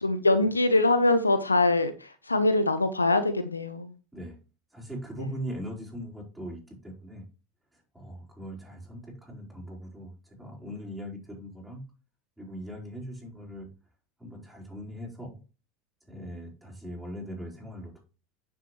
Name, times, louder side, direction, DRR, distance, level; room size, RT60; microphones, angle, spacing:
voice 1, 0.0-3.9, left 2 dB, 85° left, 11 dB, 0.8 m, -23 dB
voice 2, 4.7-7.3 7.9-11.8 12.4-13.7 14.2-15.4 16.1-18.0, equal, 5° right, -3 dB, 4.3 m, -40 dB
9.4 x 7.1 x 3.1 m, 0.33 s
figure-of-eight pair, 80°, 0 cm